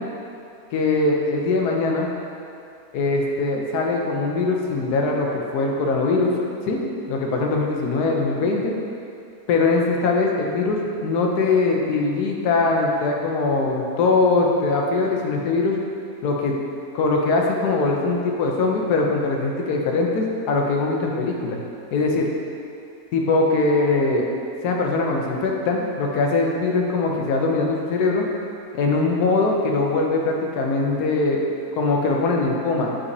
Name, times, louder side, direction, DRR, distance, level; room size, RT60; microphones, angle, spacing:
voice 1, 0.7-2.1 2.9-6.3 6.7-6.8 7.1-8.7 9.5-15.8 16.2-16.5 16.9-21.6 21.9-22.3 23.1-24.3 24.6-28.2 28.7-31.5 31.8-32.9, left 3 dB, 80° left, 0 dB, 1.3 m, -21 dB
8.7 x 3.9 x 2.7 m, 2.5 s
omnidirectional pair, 1.7 m